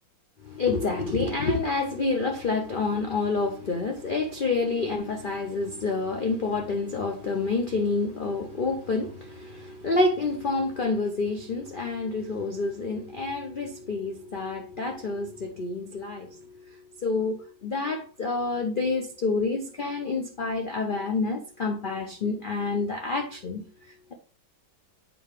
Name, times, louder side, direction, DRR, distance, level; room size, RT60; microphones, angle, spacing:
voice 1, 0.4-23.6, left 3 dB, 90° left, 0.4 m, -28 dB
7.8 x 4.3 x 3.2 m
omnidirectional pair, 2.0 m